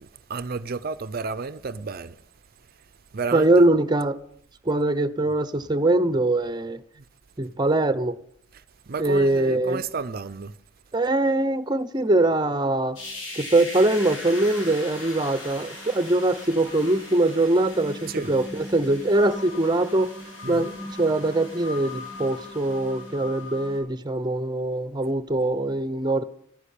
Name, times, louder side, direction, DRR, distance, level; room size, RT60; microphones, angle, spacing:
voice 1, 0.0-2.2 3.1-3.5 8.9-10.5 18.1-18.3 20.4-20.8, right 4 dB, 50° right, 0.6 m, -32 dB
voice 2, 3.3-4.2 4.7-6.8 7.4-8.2 9.0-9.8 10.9-13.0 13.4-20.1 20.5-26.2, right 2 dB, 20° right, 0.8 m, -22 dB
sound 1, 13.0-23.8, left 2 dB, 90° left, 7.2 m, -39 dB
13.5 x 9.9 x 8.5 m
head